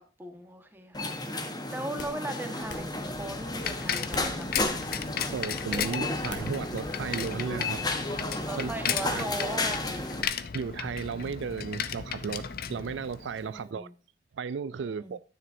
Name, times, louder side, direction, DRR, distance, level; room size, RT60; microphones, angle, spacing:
voice 1, 0.2-1.1 1.7-4.5 8.4-10.3 13.4-13.9 14.8-15.2, right 1 dB, 10° right, 1.4 m, -38 dB
sound 1, 0.9-10.2, left 2 dB, 20° left, 1.2 m, -33 dB
sound 2, 2.0-2.2 2.7-2.9 4.1-4.7 5.1-5.9 6.3-6.6, left 3 dB, 80° left, 2.0 m, -40 dB
Bicycle, 2.6-13.5, left 8 dB, 50° left, 0.6 m, -35 dB
voice 2, 5.1-8.7 9.0-9.2 10.5-13.9 14.3-15.2, right 6 dB, 75° right, 0.4 m, -35 dB
10.5 x 9.5 x 2.7 m
head